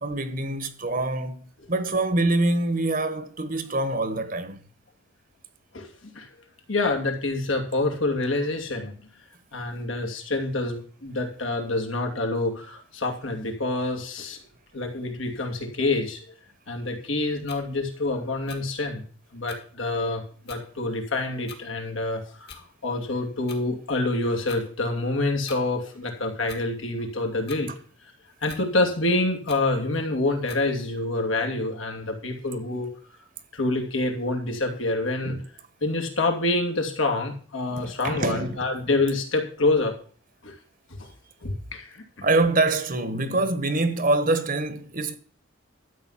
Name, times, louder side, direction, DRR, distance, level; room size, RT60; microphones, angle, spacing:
voice 1, 0.0-4.6 37.8-38.6 42.2-45.2, right 2 dB, 45° right, 1.2 m, -25 dB
voice 2, 6.7-8.9 9.5-14.4 14.7-16.2 16.7-19.0 19.3-27.7 28.4-32.9 33.5-35.5 35.8-39.9 40.4-40.5 40.9-41.1 41.4-42.3, left 2 dB, 80° left, 2.7 m, -27 dB
sound 1, 17.5-17.6 18.5-18.6 19.5-19.6 20.5-20.6 21.5-21.6 22.5-22.6 23.5-23.6 24.5-24.6 25.5-25.6 26.5-26.6 27.5-27.6 28.5-28.6 29.5-29.6 30.5-30.6, left 6 dB, 55° left, 2.1 m, -42 dB
13.0 x 8.2 x 5.8 m
head